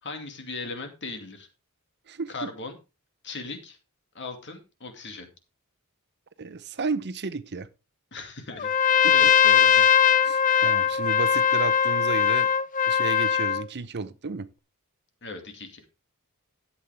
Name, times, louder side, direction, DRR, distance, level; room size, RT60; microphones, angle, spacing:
voice 1, 0.0-1.5 2.3-2.8 3.2-3.8 4.1-5.3 8.1-9.8 15.2-15.8, left 3 dB, 55° left, 2.3 m, -38 dB
voice 2, 6.4-7.7 9.0-9.1 10.2-12.5 12.9-14.5, right 4 dB, 50° right, 0.8 m, -32 dB
Trumpet, 8.6-13.6, left 8 dB, 35° left, 0.6 m, -20 dB
12.5 x 8.3 x 3.5 m
head